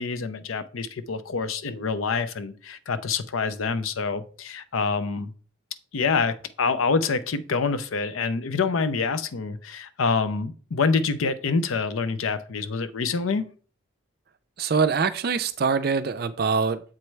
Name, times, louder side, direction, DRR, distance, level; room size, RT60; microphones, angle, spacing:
voice 1, 0.0-5.3 5.9-13.5, left 4 dB, 90° left, 0.6 m, -26 dB
voice 2, 14.6-16.8, right 5 dB, 50° right, 0.4 m, -24 dB
7.4 x 4.6 x 3.1 m
head